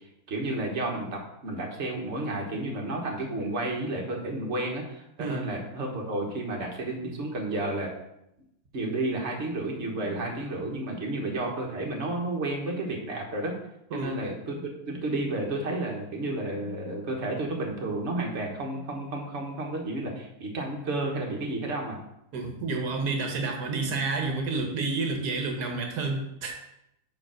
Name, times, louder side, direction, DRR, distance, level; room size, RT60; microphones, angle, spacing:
voice 1, 0.3-7.9 8.7-13.5 13.9-22.0, right 2 dB, 50° right, 0 dB, 1.5 m, -31 dB
voice 2, 5.2-5.5 13.9-14.2 22.3-26.5, right 3 dB, 85° right, 3 dB, 1.5 m, -30 dB
5.2 x 5.0 x 6.2 m, 0.81 s
omnidirectional pair, 1.6 m